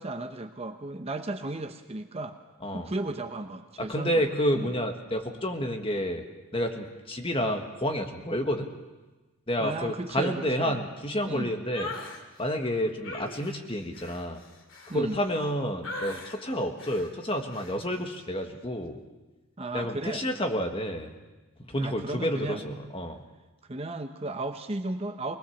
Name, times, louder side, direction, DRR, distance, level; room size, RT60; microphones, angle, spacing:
voice 1, 0.0-2.4 2.7-4.2 4.5-4.7 9.6-10.8 11.3-11.5 14.9-15.2 19.6-20.2 21.8-22.6 23.7-25.4, right 2 dB, 30° right, 7 dB, 0.8 m, -35 dB
voice 2, 3.8-6.2 6.5-8.7 9.5-11.9 12.4-14.4 14.9-19.0 19.7-21.1 21.7-23.2, equal, 25° left, 4 dB, 1.6 m, -29 dB
sound 1, 11.7-12.2 13.0-15.5 15.8-16.4 16.8-17.1 17.5-17.8, left 2 dB, 65° left, 2.6 m, -40 dB
21.5 x 20.5 x 7.2 m, 1.2 s
head